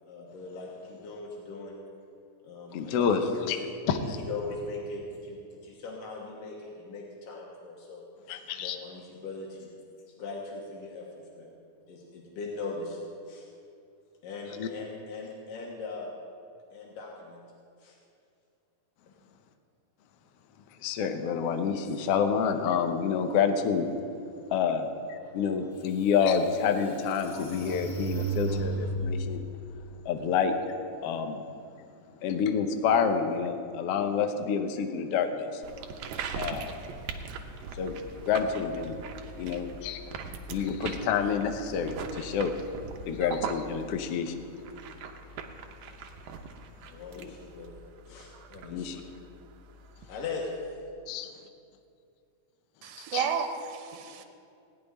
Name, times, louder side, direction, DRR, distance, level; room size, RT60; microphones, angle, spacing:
voice 1, 0.1-1.8 2.4-8.1 8.6-9.7 10.1-11.1 11.4-11.5 11.9-13.0 13.3-13.5 14.2-16.2 16.7-17.4 17.8-18.0 19.1-19.2 46.8-47.7 48.1-49.0 50.1-50.5 54.1-54.3, left 3 dB, 85° left, 3.0 m, -40 dB
voice 2, 2.7-3.2 3.5-3.6 3.9-4.2 8.3-8.8 14.6-14.7 20.8-23.9 24.5-29.5 30.0-30.5 31.0-31.4 32.2-35.6 36.3-36.7 37.7-38.0 38.3-39.0 39.4-40.0 40.5-42.5 43.0-44.3 47.2-47.3 48.7-49.0 51.1-51.3 53.1-53.2, left 6 dB, 70° left, 1.5 m, -28 dB
sound 1, 25.5-25.6 26.2-29.3, right 3 dB, 30° left, 0.8 m, -34 dB
sound 2, 35.6-50.2, right 5 dB, 70° right, 2.0 m, -41 dB
voice 3, 52.8-54.2, right 7 dB, 90° right, 2.5 m, -32 dB
17.5 x 6.0 x 9.9 m
omnidirectional pair, 3.7 m